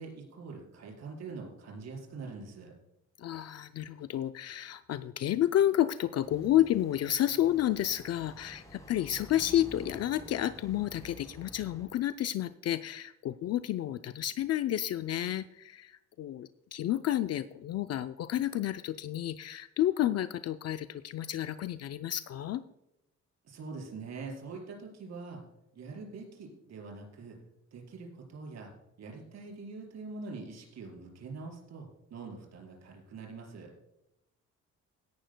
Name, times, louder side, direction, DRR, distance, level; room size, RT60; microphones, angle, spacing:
voice 1, 0.0-2.8 23.4-25.4 25.7-27.4 27.7-28.7 29.0-33.7, right 4 dB, 60° right, 0 dB, 4.7 m, -44 dB
voice 2, 3.2-22.6, left 12 dB, 55° left, 11 dB, 0.5 m, -30 dB
sound 1, 6.2-11.9, left 1 dB, 10° left, 3.8 m, -50 dB
17.0 x 11.5 x 2.2 m, 0.90 s
cardioid pair, 115°, 30 cm